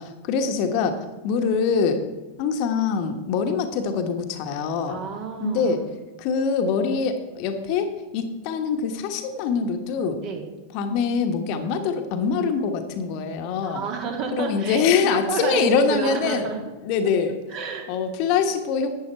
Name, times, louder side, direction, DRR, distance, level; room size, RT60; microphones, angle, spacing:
voice 1, 0.0-2.0 2.4-5.0 5.4-5.8 6.2-10.2 10.7-13.8 14.3-16.4 16.8-17.4 17.9-18.9, left 5 dB, 45° left, 7 dB, 1.2 m, -24 dB
voice 2, 4.9-5.9 10.2-10.5 13.6-14.8 15.1-16.6 17.5-17.9, right 5 dB, 40° right, 3 dB, 2.2 m, -30 dB
12.0 x 9.1 x 4.5 m, 1.2 s
figure-of-eight pair, 90°, 0 cm